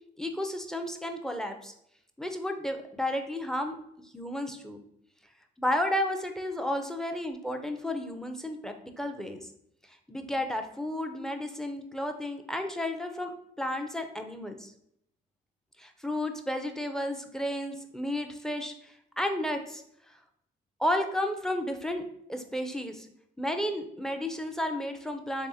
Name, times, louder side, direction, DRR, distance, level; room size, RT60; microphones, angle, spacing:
voice 1, 0.2-1.7 2.2-3.8 4.1-4.8 5.6-9.5 10.1-14.7 15.8-19.8 20.8-22.0 22.3-23.1 23.4-25.5, left 1 dB, 5° left, 6 dB, 0.4 m, -32 dB
3.5 x 3.3 x 2.7 m, 0.74 s
cardioid pair, 90°, 20 cm